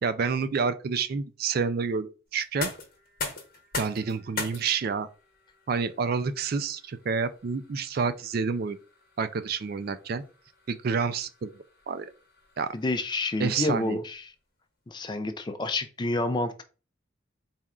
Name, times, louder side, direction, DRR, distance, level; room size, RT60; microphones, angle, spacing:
voice 1, 0.0-2.7 3.8-5.1 5.7-8.8 9.2-10.2 10.7-11.5 11.9-12.1 12.6-12.7 13.4-14.0, right 5 dB, 50° right, 0.3 m, -28 dB
sound 1, 2.3-14.1, left 4 dB, 45° left, 1.1 m, -42 dB
voice 2, 12.7-14.3 14.9-16.6, left 2 dB, 20° left, 0.4 m, -29 dB
4.2 x 2.4 x 3.6 m
head